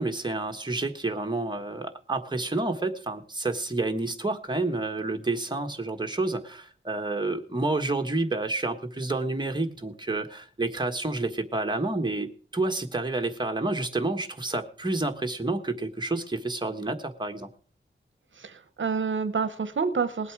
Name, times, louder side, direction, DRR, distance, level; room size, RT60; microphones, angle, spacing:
voice 1, 0.0-17.5, right 2 dB, 20° right, 5 dB, 1.4 m, -29 dB
voice 2, 18.3-20.3, right 5 dB, 65° right, 12 dB, 0.8 m, -28 dB
19.5 x 8.3 x 4.7 m, 0.42 s
wide cardioid pair, 100°, 21 cm